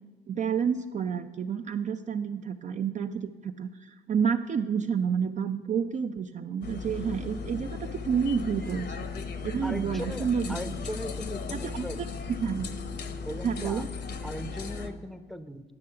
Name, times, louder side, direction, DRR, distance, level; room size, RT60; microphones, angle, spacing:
voice 1, 0.3-9.0 9.4-10.6 11.5-11.9 12.4-12.7 13.4-13.9, right 7 dB, 40° right, 8 dB, 0.4 m, -29 dB
sound 1, 6.6-14.9, left 5 dB, 60° left, 0.9 m, -36 dB
voice 2, 9.6-12.0 13.2-13.8 14.2-15.7, equal, ahead, 11 dB, 0.6 m, -38 dB
9.7 x 6.7 x 6.6 m, 1.3 s
cardioid pair, 90°, 20 cm